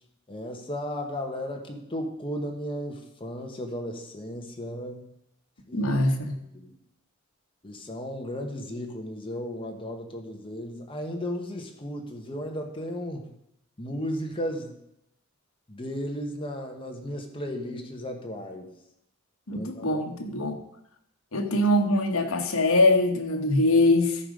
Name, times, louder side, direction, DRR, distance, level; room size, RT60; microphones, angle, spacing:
voice 1, 0.3-5.1 5.7-5.9 6.5-6.7 7.6-13.3 13.8-14.8 15.7-18.7 19.5-20.3, equal, 25° left, 3 dB, 1.3 m, -35 dB
voice 2, 5.7-6.4 19.5-20.6 21.3-24.2, left 2 dB, 80° left, 5 dB, 1.2 m, -23 dB
13.0 x 5.1 x 5.1 m, 0.78 s
head